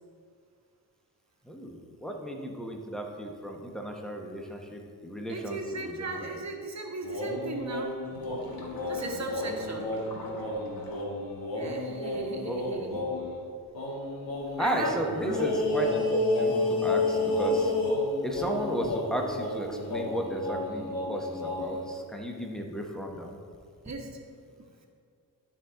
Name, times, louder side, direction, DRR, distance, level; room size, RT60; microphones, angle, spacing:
voice 1, 1.4-6.3 12.1-13.0 14.6-17.7 18.2-23.4, equal, ahead, 1 dB, 1.2 m, -34 dB
voice 2, 5.3-7.9 8.9-9.9 11.5-13.0 14.6-15.0 23.8-24.2, right 2 dB, 45° right, 2 dB, 1.3 m, -36 dB
sound 1, 7.0-13.3 13.7-21.8, left 2 dB, 65° left, 1.7 m, -31 dB
12.0 x 4.2 x 3.9 m, 2.2 s
cardioid pair, 70°, 37 cm